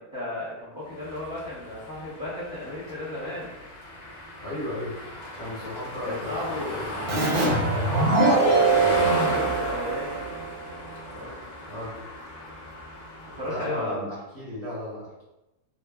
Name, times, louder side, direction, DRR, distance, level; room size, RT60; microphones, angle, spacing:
voice 1, 0.0-3.5 6.0-6.8 7.9-10.2 11.1-11.3 13.3-14.0, left 1 dB, 20° right, -11 dB, 0.6 m, -34 dB
sound 1, 0.9-13.9, left 1 dB, 60° left, 1.0 m, -35 dB
voice 2, 4.4-4.9 5.4-6.9 7.7-8.0 11.7-11.9 13.4-15.2, left 1 dB, 30° left, -10 dB, 0.9 m, -35 dB
Keyboard (musical), 7.1-10.5, right 3 dB, 60° right, 0.5 m, -22 dB
3.1 x 2.1 x 2.3 m, 0.96 s
omnidirectional pair, 1.6 m